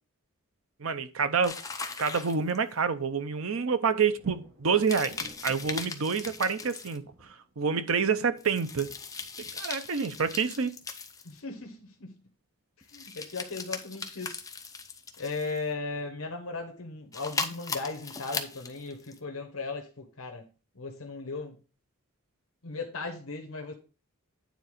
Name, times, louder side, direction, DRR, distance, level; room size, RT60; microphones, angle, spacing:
voice 1, 0.8-1.6 2.0-5.1 5.4-7.0 7.6-8.9 9.6-10.8, right 5 dB, 65° right, 0.7 m, -27 dB
sound 1, 1.4-2.8 4.8-7.0 8.4-11.4 12.8-15.6 17.1-19.2, left 4 dB, 15° left, 0.7 m, -38 dB
Thunder, 4.1-11.8 15.5-15.6 16.0-16.9, right 1 dB, 45° right, 1.6 m, -54 dB
voice 2, 11.2-12.2 12.9-14.4 15.2-20.5 20.7-21.6 22.6-23.7, left 3 dB, 70° left, 1.2 m, -37 dB
9.4 x 3.9 x 5.0 m
head